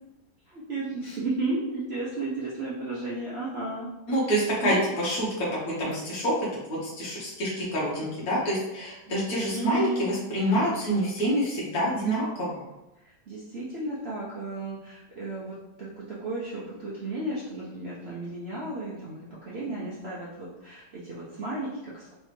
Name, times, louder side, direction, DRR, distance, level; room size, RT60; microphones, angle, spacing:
voice 1, 0.5-3.9 4.6-4.8 9.5-10.1 13.3-22.1, right 2 dB, 60° right, -7 dB, 0.6 m, -33 dB
voice 2, 4.1-12.6, equal, 55° left, -7 dB, 1.4 m, -27 dB
3.7 x 3.2 x 3.2 m, 0.96 s
omnidirectional pair, 2.0 m